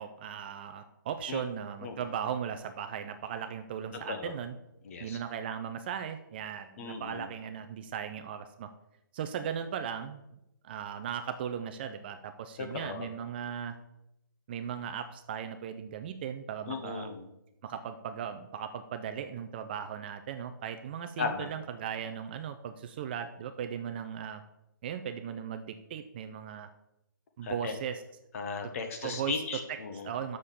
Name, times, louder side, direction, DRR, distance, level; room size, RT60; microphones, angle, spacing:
voice 1, 0.0-4.6 5.0-8.7 9.1-10.2 10.6-13.8 14.5-17.1 17.6-24.4 24.8-26.7 27.4-28.0 29.0-29.4 30.0-30.4, right 8 dB, 30° right, 8 dB, 0.4 m, -37 dB
voice 2, 4.8-5.2 6.8-7.3 12.6-13.1 16.7-17.3 21.2-21.5 27.4-27.7 28.3-30.1, left 5 dB, 40° left, 5 dB, 1.2 m, -36 dB
6.5 x 5.5 x 6.8 m, 0.87 s
hypercardioid pair, 150°, 11 cm